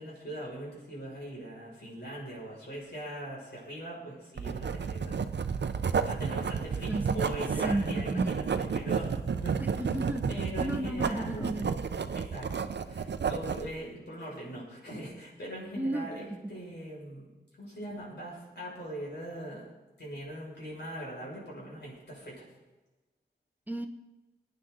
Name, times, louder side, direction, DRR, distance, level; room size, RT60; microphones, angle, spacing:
voice 1, 0.0-5.2 6.0-9.8 10.3-11.6 12.1-17.3 17.6-19.7 20.0-22.5, right 1 dB, 70° left, -4 dB, 6.1 m, -41 dB
Writing, 4.4-13.7, right 6 dB, 75° right, 0.6 m, -31 dB
voice 2, 6.9-7.3 7.6-8.3 9.8-11.8 15.7-16.1 23.7-23.9, right 1 dB, 10° right, 6 dB, 0.8 m, -33 dB
22.0 x 9.6 x 3.9 m, 1.1 s
wide cardioid pair, 95°, 18 cm